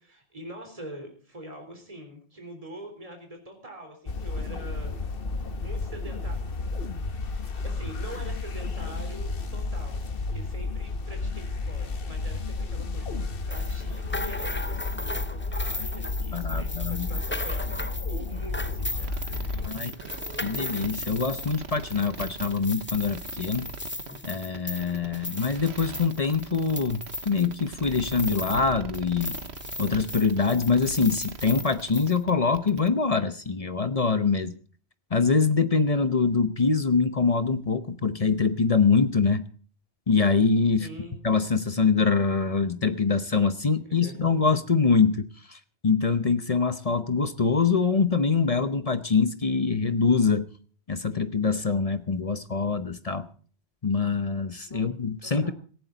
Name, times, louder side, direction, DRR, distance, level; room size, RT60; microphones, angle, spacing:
voice 1, 0.0-5.0 5.6-6.9 7.4-19.9 40.8-41.2 43.8-44.2 54.6-55.5, right 1 dB, 30° right, 3 dB, 4.0 m, -44 dB
sound 1, 4.1-19.7, left 3 dB, 55° left, 1.4 m, -32 dB
sound 2, 13.5-28.7 28.9-32.2, left 2 dB, 15° left, 0.6 m, -37 dB
voice 2, 16.3-17.1 19.7-19.9 20.4-23.7 24.2-29.4 29.8-34.5 35.1-39.5 40.1-40.9 41.2-50.5 50.9-53.3 53.8-55.5, left 5 dB, 35° left, 11 dB, 0.9 m, -24 dB
sound 3, 19.0-32.9, right 5 dB, 70° right, 1.4 m, -40 dB
18.0 x 15.0 x 4.0 m, 0.42 s
omnidirectional pair, 1.1 m